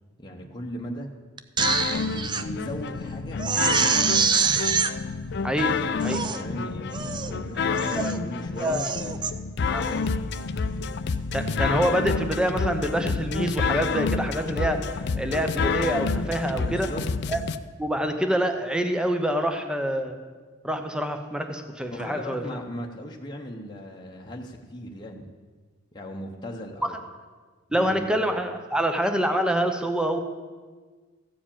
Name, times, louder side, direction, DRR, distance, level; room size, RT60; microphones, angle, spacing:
voice 1, 0.2-1.1 1.8-4.3 6.3-9.2 16.5-17.1 21.9-25.3 25.9-27.0 27.8-28.1, equal, 20° left, -1 dB, 0.9 m, -37 dB
Crying sobbing, 1.4-2.4 2.9-3.0 3.4-4.9 5.6-5.7 6.0-6.4 6.9-7.3 7.7-8.2 8.6-9.3 9.8-10.1, right 6 dB, 25° right, 0.4 m, -25 dB
sound 1, 1.6-17.6, left 4 dB, 55° left, 0.4 m, -28 dB
voice 2, 5.4-5.8 6.0-6.2 7.7-8.1 8.6-8.9 9.7-9.8 11.3-16.9 17.3-17.4 17.8-20.2 20.6-22.4 26.8-26.9 27.7-30.2, right 1 dB, 5° right, 6 dB, 0.8 m, -26 dB
15.0 x 5.0 x 8.7 m, 1.4 s
head